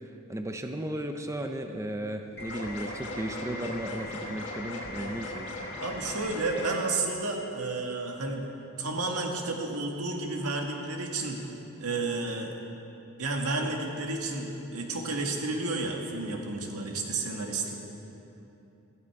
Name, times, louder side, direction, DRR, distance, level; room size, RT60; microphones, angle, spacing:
voice 1, 0.3-5.5, right 1 dB, 15° right, 5 dB, 0.6 m, -35 dB
sound 1, 2.4-6.8, left 1 dB, 50° left, 2.3 m, -38 dB
voice 2, 5.8-8.5 8.8-11.5 11.8-12.5 13.2-17.8, right 3 dB, 90° right, 1 dB, 1.8 m, -31 dB
15.5 x 14.0 x 4.7 m, 3.0 s
head